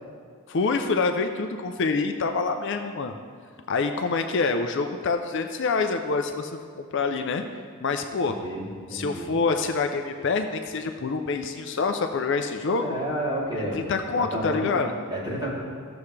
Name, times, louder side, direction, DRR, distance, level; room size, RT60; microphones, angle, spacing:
voice 1, 0.5-3.2 3.7-7.4 7.8-8.4 8.9-13.0 13.7-14.9, left 4 dB, 55° left, 6 dB, 0.5 m, -26 dB
voice 2, 8.2-9.3 12.8-13.8 14.1-14.7 15.1-15.6, right 1 dB, 20° right, -9 dB, 2.8 m, -31 dB
14.5 x 7.0 x 3.3 m, 2.1 s
head